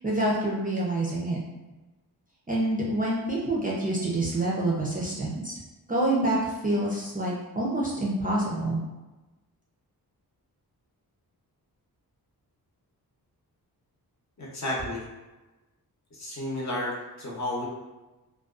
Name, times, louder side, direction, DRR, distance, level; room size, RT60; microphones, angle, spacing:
voice 1, 0.0-1.4 2.5-5.6 5.9-8.8, right 1 dB, 25° right, -5 dB, 0.4 m, -27 dB
voice 2, 14.4-15.0 16.1-17.6, left 1 dB, 45° left, -4 dB, 0.8 m, -32 dB
2.4 x 2.2 x 2.4 m, 1.1 s
wide cardioid pair, 95°, 38 cm